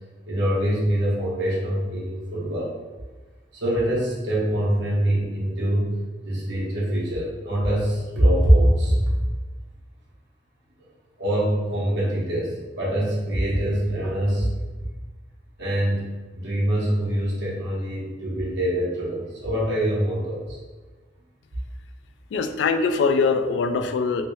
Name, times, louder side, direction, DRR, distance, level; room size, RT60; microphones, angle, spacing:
voice 1, 0.3-2.7 3.5-9.0 11.2-14.5 15.6-20.6, right 1 dB, 70° right, -6 dB, 0.9 m, -24 dB
voice 2, 22.3-24.3, left 4 dB, 70° left, 8 dB, 0.3 m, -22 dB
3.1 x 3.0 x 3.1 m, 1.3 s
head